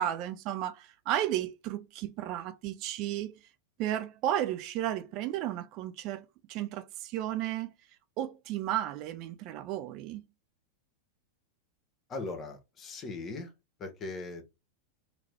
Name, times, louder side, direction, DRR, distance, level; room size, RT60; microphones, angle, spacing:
voice 1, 0.0-3.3 3.8-7.7 8.2-10.2, right 12 dB, 40° right, 0.5 m, -33 dB
voice 2, 12.1-13.5 13.8-14.5, left 3 dB, 25° left, 1.2 m, -39 dB
3.3 x 3.2 x 3.4 m
figure-of-eight pair, 90°, 0 cm